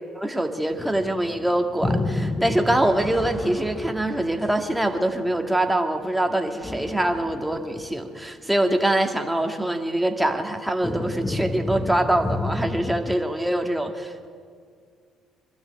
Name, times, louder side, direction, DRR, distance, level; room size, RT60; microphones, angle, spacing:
voice 1, 0.2-14.3, right 1 dB, 5° right, 4 dB, 2.0 m, -24 dB
sound 1, 0.8-5.6 6.6-7.9 8.2-8.3 10.8-13.2, left 2 dB, 20° left, 0.8 m, -31 dB
23.0 x 12.5 x 9.0 m, 2.1 s
supercardioid pair, 75°, 0 cm